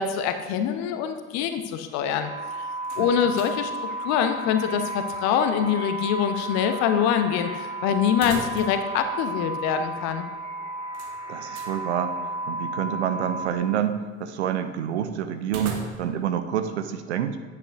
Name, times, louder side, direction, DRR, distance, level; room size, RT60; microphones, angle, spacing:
voice 1, 0.0-2.3 2.6-2.7 3.0-3.7 4.0-10.3, left 8 dB, 50° left, 8 dB, 0.7 m, -24 dB
sound 1, 2.2-13.4, right 1 dB, 85° right, 1.9 m, -33 dB
sound 2, 2.8-3.7 4.0-4.1 8.1-8.9 9.2-9.3 10.9-11.8 15.4-16.3, right 4 dB, 50° right, 1.1 m, -38 dB
voice 2, 11.3-17.4, right 9 dB, 70° right, 9 dB, 0.6 m, -28 dB
9.1 x 8.8 x 2.6 m, 1.4 s
figure-of-eight pair, 60°, 34 cm